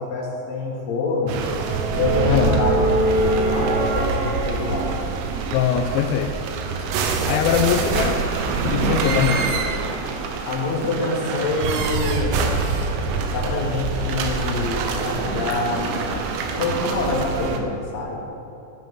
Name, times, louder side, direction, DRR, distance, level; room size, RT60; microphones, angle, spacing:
voice 1, 0.0-1.4 1.9-4.9 10.4-12.4 13.3-16.3 16.5-18.2, left 3 dB, 55° left, -4 dB, 3.9 m, -26 dB
sound 1, 1.3-17.6, right 3 dB, 80° right, 3.8 m, -24 dB
voice 2, 5.5-6.3 6.8-6.9 7.3-8.2 8.6-9.7, left 8 dB, 85° left, 4 dB, 2.7 m, -21 dB
16.0 x 13.0 x 3.8 m, 2.9 s
omnidirectional pair, 6.0 m